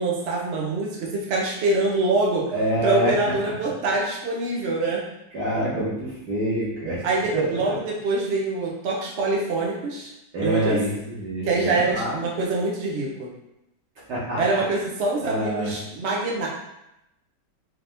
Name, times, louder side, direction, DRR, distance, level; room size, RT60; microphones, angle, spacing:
voice 1, 0.0-2.4 2.8-5.0 7.0-10.1 10.4-10.8 11.4-13.3 14.4-16.5, right 3 dB, 85° right, -2 dB, 0.5 m, -24 dB
voice 2, 2.5-3.1 5.3-7.0 7.3-7.6 10.3-12.2 14.1-14.6 15.2-15.7, right 1 dB, 65° right, -8 dB, 1.6 m, -26 dB
4.1 x 2.7 x 3.3 m, 0.87 s
omnidirectional pair, 2.1 m